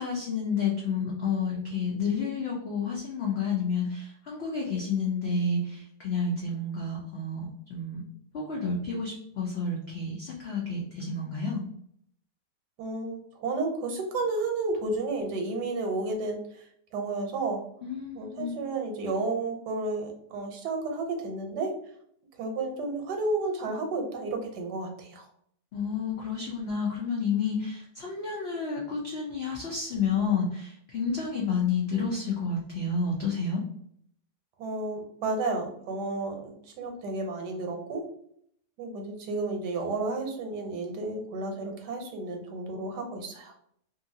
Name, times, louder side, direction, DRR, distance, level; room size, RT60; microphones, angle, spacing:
voice 1, 0.0-8.0 8.3-11.6 17.8-18.6 25.7-33.6, left 4 dB, 80° left, -3 dB, 0.5 m, -30 dB
voice 2, 12.8-16.6 16.9-17.6 18.1-21.7 22.4-25.3 34.6-38.0 38.8-43.5, right 3 dB, 80° right, 3 dB, 1.2 m, -32 dB
2.8 x 2.6 x 2.6 m, 0.67 s
omnidirectional pair, 1.8 m